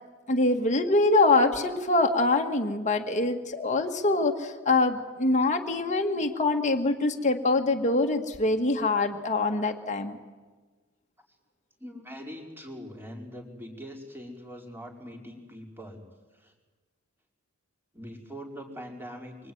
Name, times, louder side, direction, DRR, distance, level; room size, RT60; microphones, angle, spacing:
voice 1, 0.3-10.2, left 2 dB, 35° left, 3 dB, 1.8 m, -24 dB
voice 2, 11.8-16.0 16.3-16.5 17.9-19.5, equal, 10° right, 1 dB, 4.9 m, -42 dB
25.5 x 24.5 x 9.5 m, 1.3 s
head